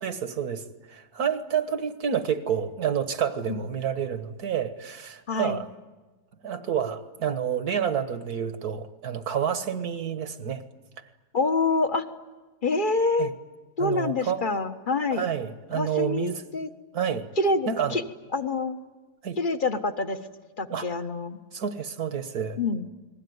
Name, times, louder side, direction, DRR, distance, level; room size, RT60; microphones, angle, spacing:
voice 1, 0.0-0.6 0.9-5.7 6.4-10.6 13.2-13.3 13.8-14.4 15.1-16.4 16.9-17.3 17.7-18.0 19.2-19.4 20.7-20.9 21.5-22.6, right 8 dB, 65° right, 10 dB, 1.9 m, -29 dB
voice 2, 5.3-5.6 11.3-12.0 12.6-13.3 13.8-15.2 15.7-16.7 17.4-18.0 18.3-18.8 19.4-20.2 20.6-21.4 22.6-22.8, left 3 dB, 30° left, 8 dB, 1.4 m, -26 dB
29.5 x 21.0 x 9.5 m, 1.2 s
omnidirectional pair, 1.8 m